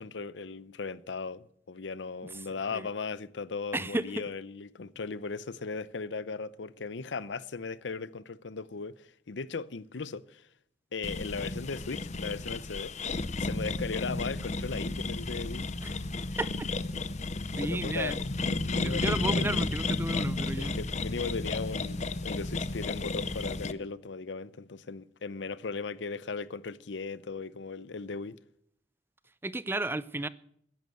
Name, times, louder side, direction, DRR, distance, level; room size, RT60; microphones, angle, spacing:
voice 1, 0.0-10.5 10.9-12.9 13.4-15.7 17.6-18.2 18.7-19.8 20.6-28.4, left 4 dB, 80° left, 0.7 m, -37 dB
voice 2, 3.7-4.1 15.8-15.9 16.4-16.7 17.6-18.2 18.7-20.8 29.4-30.3, right 2 dB, 15° right, 0.5 m, -33 dB
sound 1, 11.0-23.7, left 3 dB, 40° left, 0.7 m, -33 dB
16.0 x 10.5 x 7.7 m
head